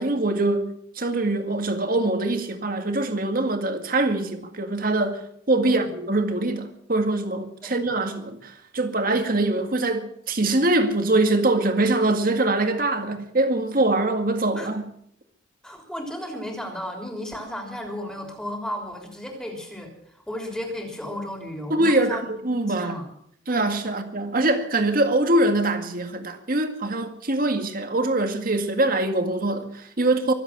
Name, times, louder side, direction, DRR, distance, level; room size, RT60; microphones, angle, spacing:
voice 1, 0.0-14.8 21.7-23.0 23.5-30.3, right 2 dB, 45° right, 2.0 m, -23 dB
voice 2, 5.6-6.0 7.6-7.8 14.5-14.7 15.6-22.2 22.7-23.1, left 1 dB, 5° left, 3.4 m, -34 dB
24.0 x 8.1 x 7.3 m
head